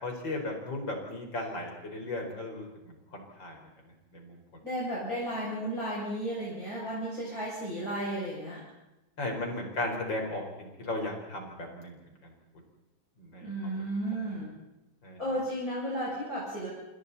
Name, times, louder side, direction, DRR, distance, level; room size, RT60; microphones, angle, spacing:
voice 1, 0.0-3.6 4.1-4.4 9.2-12.0 12.2-12.3 13.2-13.8 15.0-15.2, left 2 dB, 65° left, 2 dB, 5.4 m, -36 dB
voice 2, 4.6-8.6 13.4-14.5 15.2-16.7, right 1 dB, 45° left, -7 dB, 7.4 m, -33 dB
28.0 x 27.5 x 4.2 m, 1.0 s
omnidirectional pair, 2.2 m